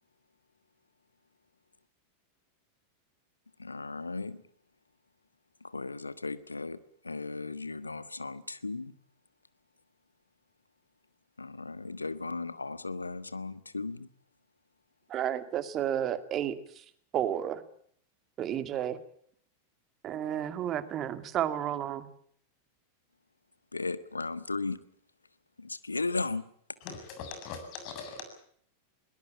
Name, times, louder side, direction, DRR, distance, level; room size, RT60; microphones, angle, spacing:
voice 1, 3.6-4.4 5.6-6.8 7.0-8.9 11.4-14.1 23.7-24.8 25.6-26.4, left 3 dB, 80° left, 15 dB, 1.4 m, -36 dB
voice 2, 15.1-16.8 17.1-17.6 18.4-19.0 20.0-22.0, right 10 dB, 30° right, 12 dB, 2.2 m, -32 dB
voice 3, 26.9-28.2, left 5 dB, 40° left, 7 dB, 7.4 m, -41 dB
21.5 x 19.5 x 8.7 m, 0.63 s
figure-of-eight pair, 90°, 0 cm